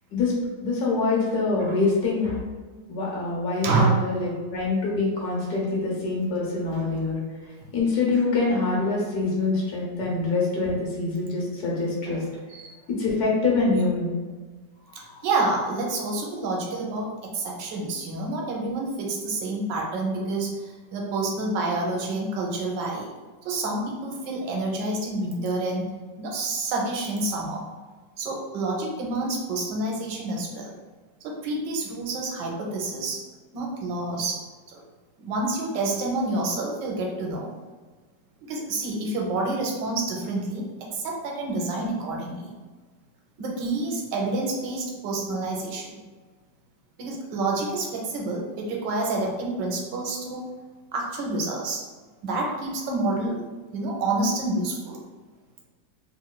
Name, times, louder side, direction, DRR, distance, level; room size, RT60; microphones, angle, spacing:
voice 1, 0.6-2.4 2.9-7.2 7.7-12.2 13.0-14.1, left 3 dB, 65° left, -3 dB, 1.2 m, -25 dB
voice 2, 3.6-4.0 7.6-7.7 12.1-12.2 12.5-12.7 14.9-23.1 23.4-25.9 26.2-27.6 28.2-30.7 31.2-33.2 33.5-34.4 34.7-34.8 35.2-37.5 38.5-40.7 40.9-42.5 43.4-46.0 47.0-50.4 50.9-51.8 52.2-53.4 53.7-55.0, right 2 dB, 80° right, -1 dB, 1.2 m, -28 dB
3.0 x 2.9 x 2.2 m, 1.4 s
omnidirectional pair, 2.0 m